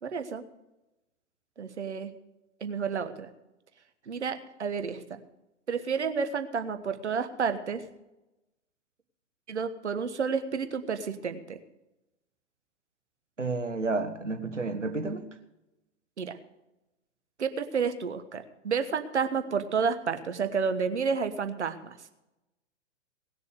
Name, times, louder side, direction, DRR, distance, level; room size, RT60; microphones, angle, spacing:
voice 1, 0.0-0.4 1.6-2.1 2.6-3.3 4.1-5.2 5.7-7.8 9.5-11.6 16.2-16.4 17.4-21.9, right 6 dB, 70° right, 10 dB, 1.4 m, -30 dB
voice 2, 13.4-15.3, right 3 dB, 85° right, 7 dB, 1.6 m, -31 dB
18.5 x 6.8 x 6.6 m, 0.95 s
figure-of-eight pair, 110°, 36 cm